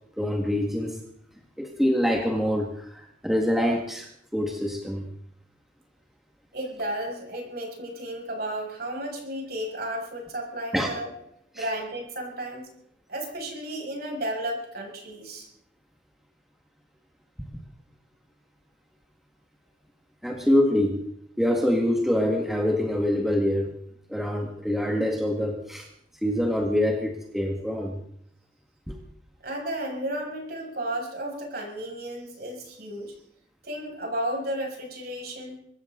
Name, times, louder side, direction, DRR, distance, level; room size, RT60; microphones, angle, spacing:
voice 1, 0.2-1.0 1.6-5.1 10.7-11.0 11.5-11.6 20.2-21.1 21.4-23.8 24.1-25.9 26.2-28.0 28.9-29.0, equal, ahead, 1 dB, 1.8 m, -25 dB
voice 2, 6.5-11.1 11.5-12.7 13.1-15.5 29.4-33.1 33.6-35.6, right 1 dB, 55° right, 0 dB, 6.7 m, -33 dB
25.0 x 14.5 x 4.0 m, 0.72 s
head